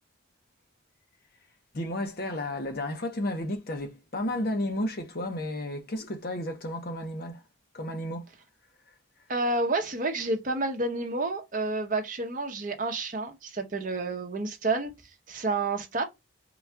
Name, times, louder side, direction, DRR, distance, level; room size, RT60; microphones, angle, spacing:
voice 1, 1.7-7.4 7.7-8.2, left 1 dB, 50° left, 0.8 m, -32 dB
voice 2, 9.3-14.9 15.3-16.0, right 2 dB, 40° right, 0.8 m, -29 dB
3.9 x 2.3 x 4.4 m
head